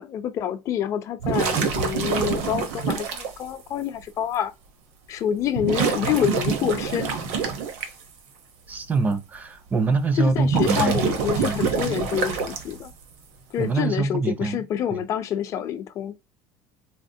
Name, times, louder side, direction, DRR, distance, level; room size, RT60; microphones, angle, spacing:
voice 1, 0.0-4.5 5.1-7.2 10.1-12.9 13.5-16.1, left 9 dB, 45° left, 0.5 m, -27 dB
sound 1, 1.2-3.3 4.3-4.4 5.5-7.9 10.3-12.9, right 6 dB, 80° right, 0.9 m, -26 dB
voice 2, 8.7-11.0 11.4-11.6 13.6-14.6 14.9-15.0, right 4 dB, 20° right, 0.4 m, -24 dB
4.2 x 2.1 x 2.7 m
cardioid pair, 135°, 8 cm